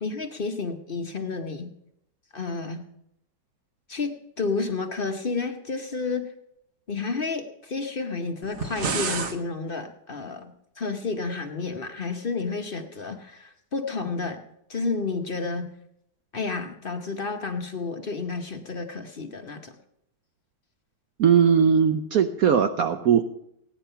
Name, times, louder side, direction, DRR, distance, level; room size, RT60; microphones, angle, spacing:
voice 1, 0.0-1.7 2.3-2.8 3.9-6.2 6.9-14.4 14.7-15.7 16.3-19.7, left 4 dB, 45° left, 5 dB, 0.7 m, -31 dB
sound 1, 8.4-9.4, right 4 dB, 45° right, 1.0 m, -29 dB
voice 2, 21.2-23.2, right 7 dB, 70° right, 8 dB, 0.8 m, -19 dB
16.5 x 9.8 x 5.6 m, 0.78 s
omnidirectional pair, 2.1 m